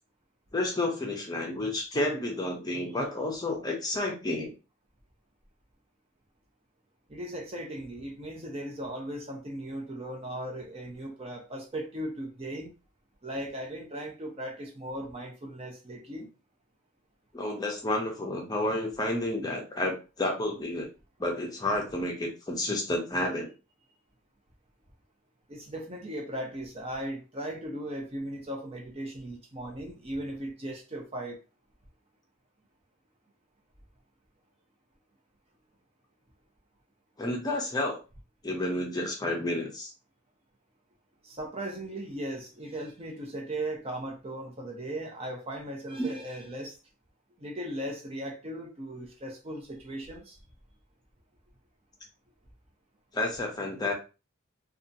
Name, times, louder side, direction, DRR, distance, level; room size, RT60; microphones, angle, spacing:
voice 1, 0.5-4.5 17.3-20.9 21.2-23.5 37.2-38.0 38.4-39.9 46.0-46.2 53.1-53.9, left 1 dB, 20° left, 0.6 m, -30 dB
voice 2, 7.1-12.7 13.2-16.3 25.5-31.4 41.2-46.8 47.4-50.4, right 1 dB, 30° right, 0.6 m, -37 dB
2.8 x 2.4 x 2.6 m
head